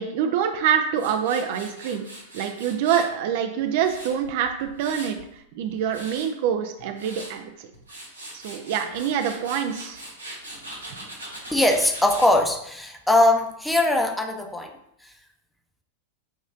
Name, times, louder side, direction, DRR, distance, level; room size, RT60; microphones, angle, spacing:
voice 1, 0.0-2.1 2.3-7.7 8.3-10.0, right 8 dB, 50° right, 6 dB, 0.4 m, -26 dB
Tools, 1.0-3.1 3.6-5.2 5.7-6.3 6.8-7.3 7.7-12.3, right 1 dB, 80° right, 1.0 m, -40 dB
voice 2, 11.5-14.7 15.0-15.1, left 1 dB, 5° left, 2 dB, 0.6 m, -21 dB
6.2 x 3.0 x 2.5 m, 0.74 s
figure-of-eight pair, 90°, 0 cm